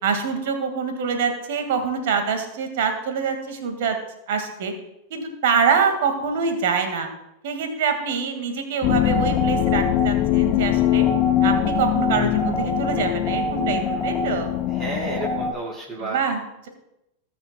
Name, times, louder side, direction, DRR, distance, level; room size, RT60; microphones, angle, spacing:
voice 1, 0.0-4.0 4.3-4.7 5.1-7.1 7.4-11.0 11.4-14.5 16.0-16.7, right 6 dB, 55° right, 6 dB, 1.9 m, -25 dB
sound 1, 8.8-15.5, left 15 dB, 45° left, 0.5 m, -22 dB
sound 2, 9.0-15.5, right 3 dB, 15° left, 4.2 m, -29 dB
voice 2, 14.7-16.2, right 2 dB, 25° right, -9 dB, 4.2 m, -32 dB
20.0 x 6.9 x 2.3 m, 0.87 s
figure-of-eight pair, 90°, 0 cm